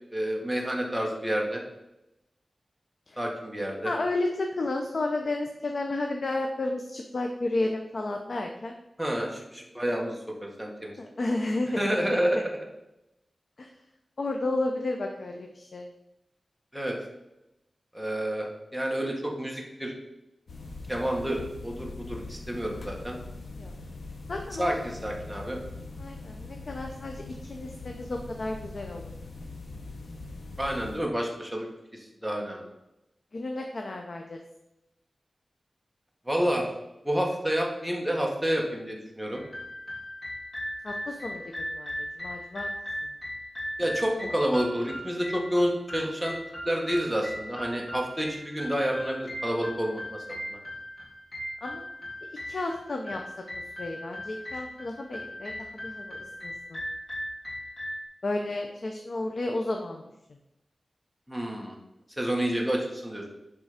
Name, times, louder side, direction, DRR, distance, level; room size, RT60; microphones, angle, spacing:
voice 1, 0.1-1.6 3.2-3.9 9.0-11.0 11.8-12.4 16.7-17.0 17.9-19.9 20.9-23.2 24.6-25.6 30.6-32.7 36.3-36.7 37.0-39.4 43.8-46.3 46.6-50.6 61.3-61.8 62.2-63.3, equal, ahead, -1 dB, 1.6 m, -29 dB
voice 2, 3.8-8.7 11.0-12.2 13.6-13.7 14.2-15.9 23.6-23.7 24.3-24.8 26.0-27.2 27.5-29.1 33.3-34.4 40.8-42.7 51.6-51.8 52.5-53.2 53.8-56.2 56.4-56.8 58.2-60.0, left 2 dB, 55° left, 3 dB, 0.7 m, -32 dB
sound 1, 20.5-31.0, left 3 dB, 80° left, 1.2 m, -42 dB
sound 2, 39.3-58.0, equal, 30° left, 2.0 m, -38 dB
10.5 x 3.8 x 5.1 m, 0.92 s
wide cardioid pair, 115°, 0 cm